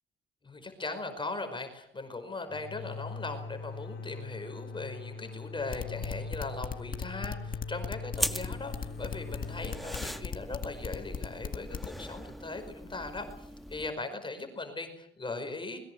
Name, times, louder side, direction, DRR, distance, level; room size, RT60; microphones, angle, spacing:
voice 1, 0.4-15.8, left 3 dB, 25° left, 7 dB, 5.2 m, -39 dB
sound 1, 2.5-12.0, left 4 dB, 70° left, 3.3 m, -42 dB
sound 2, 5.7-11.9, left 6 dB, 45° left, 2.1 m, -37 dB
sound 3, 8.1-13.9, equal, ahead, 1.5 m, -40 dB
22.0 x 21.5 x 8.0 m, 0.71 s
cardioid pair, 90°, 20 cm